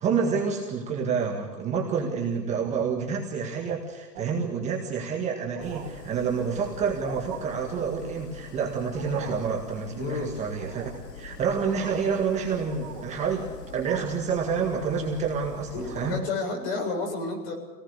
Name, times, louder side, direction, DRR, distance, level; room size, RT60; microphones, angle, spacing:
voice 1, 0.0-16.2, right 6 dB, 15° right, 0 dB, 1.9 m, -28 dB
sound 1, 2.5-3.1 3.5-3.8 4.2-4.4 5.0-5.1 5.4-6.1 6.9-7.4 8.8-9.5 10.6-11.1 11.5-12.2 12.6-13.2 13.8-14.3 14.6-15.3 15.7-16.4, right 9 dB, 30° right, 3.3 m, -43 dB
sound 2, 5.6-16.2, left 4 dB, 75° left, 3.7 m, -44 dB
voice 2, 10.0-10.4 15.7-17.5, left 3 dB, 40° left, 3 dB, 7.3 m, -31 dB
26.0 x 18.5 x 6.7 m, 1.4 s
hypercardioid pair, 155°, 48 cm